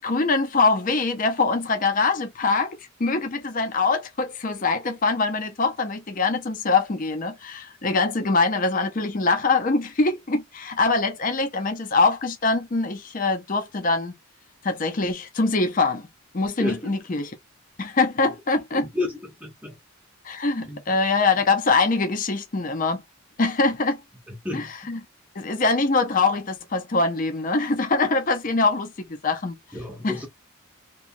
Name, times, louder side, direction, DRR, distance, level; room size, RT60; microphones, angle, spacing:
voice 1, 0.0-14.2 14.6-16.1 16.3-17.3 17.8-18.9 20.2-23.0 23.4-24.0 24.5-25.0 25.4-29.6 30.0-30.3, left 3 dB, 40° left, 0.6 m, -23 dB
voice 2, 16.6-17.0 18.2-18.3 18.7-19.8 20.7-20.8 23.7-23.8 24.3-24.9 29.7-30.3, left 2 dB, 5° right, 0.8 m, -32 dB
2.9 x 2.3 x 2.5 m
head